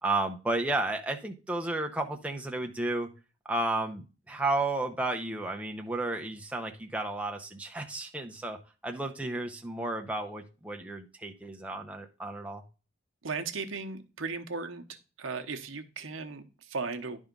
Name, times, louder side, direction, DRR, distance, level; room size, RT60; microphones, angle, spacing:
voice 1, 0.0-3.1 3.5-12.6, right 2 dB, 5° right, 2 dB, 0.7 m, -32 dB
voice 2, 13.2-14.9 15.2-17.2, right 4 dB, 80° right, 6 dB, 0.9 m, -36 dB
10.5 x 3.6 x 5.2 m, 0.33 s
head